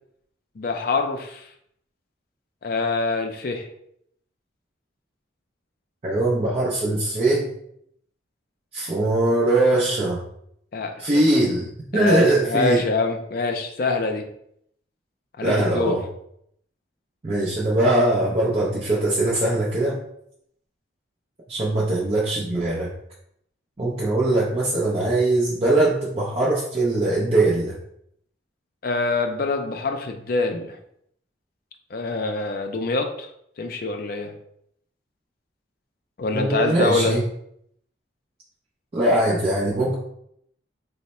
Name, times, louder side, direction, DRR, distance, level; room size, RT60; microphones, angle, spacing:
voice 1, 0.6-1.5 2.6-3.7 10.7-11.3 11.9-14.3 15.4-16.0 28.8-30.8 31.9-33.3 33.6-34.3 36.2-37.2, left 3 dB, 50° left, 4 dB, 0.4 m, -25 dB
voice 2, 6.0-7.5 8.7-10.2 11.0-11.7 11.9-12.9 15.4-16.0 17.2-20.0 21.5-22.9 23.8-27.7 36.3-37.2 38.9-39.9, right 2 dB, 30° right, -7 dB, 0.5 m, -21 dB
3.2 x 2.0 x 4.2 m, 0.72 s
head